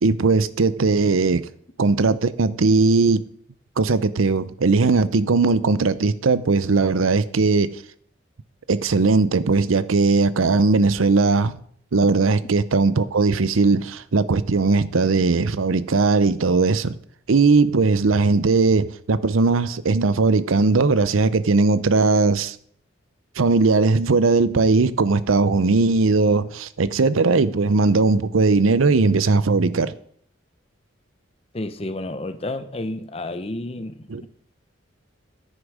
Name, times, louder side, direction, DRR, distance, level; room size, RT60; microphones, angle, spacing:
voice 1, 0.0-1.4 1.8-3.3 3.8-7.7 8.7-11.5 11.9-16.9 17.3-22.6 23.4-29.9 34.1-34.2, right 3 dB, 90° right, 0.6 m, -19 dB
voice 2, 31.5-34.3, left 2 dB, 30° left, 0.8 m, -31 dB
10.5 x 9.8 x 4.9 m
head